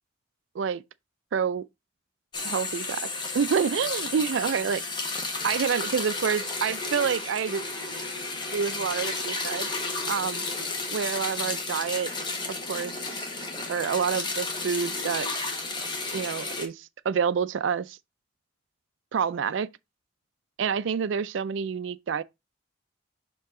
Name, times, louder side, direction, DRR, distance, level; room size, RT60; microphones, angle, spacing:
voice 1, 1.3-1.6 2.4-4.8 5.4-7.6 8.5-9.7 10.1-10.4 10.9-12.1 12.7-13.3 13.7-15.3 16.1-18.0 19.1-19.7 20.6-22.2, right 6 dB, 75° right, 0.4 m, -28 dB
sound 1, 2.3-16.7, left 3 dB, 25° left, 1.2 m, -32 dB
5.6 x 4.6 x 3.6 m
head